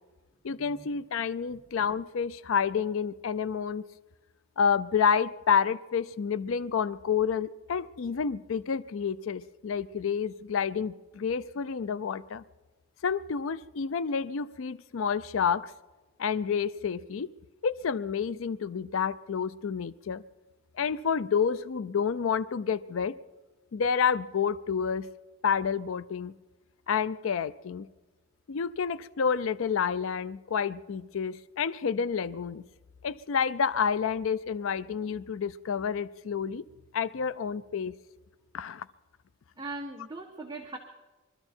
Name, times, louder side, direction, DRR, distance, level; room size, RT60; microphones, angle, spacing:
voice 1, 0.4-3.8 4.6-12.4 13.0-15.7 16.2-17.3 17.6-20.2 20.7-23.2 23.7-25.1 25.4-26.3 26.9-27.9 28.5-32.6 33.0-36.6 36.9-37.9 38.5-38.9, left 6 dB, 70° left, 16 dB, 0.4 m, -29 dB
voice 2, 39.6-40.8, right 2 dB, 20° right, 1 dB, 1.4 m, -39 dB
22.5 x 13.5 x 4.4 m, 1.2 s
head